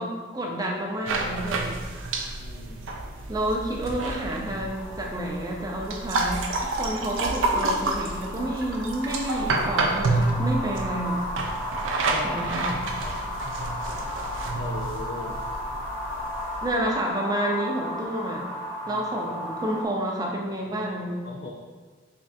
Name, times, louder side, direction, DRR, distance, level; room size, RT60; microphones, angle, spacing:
voice 1, 0.0-1.8 3.3-11.2 12.2-12.7 16.6-18.5 18.9-21.2, right 1 dB, 20° right, -1 dB, 0.4 m, -29 dB
sound 1, 1.1-16.7, right 2 dB, 85° right, 0.4 m, -29 dB
voice 2, 2.4-2.9 12.0-12.4 13.0-13.3 14.5-15.4 18.8-19.0 21.2-21.5, left 3 dB, 60° left, -3 dB, 0.4 m, -38 dB
sound 2, 4.7-19.8, left 1 dB, 15° left, 0.7 m, -35 dB
3.6 x 3.1 x 2.6 m, 1.5 s
head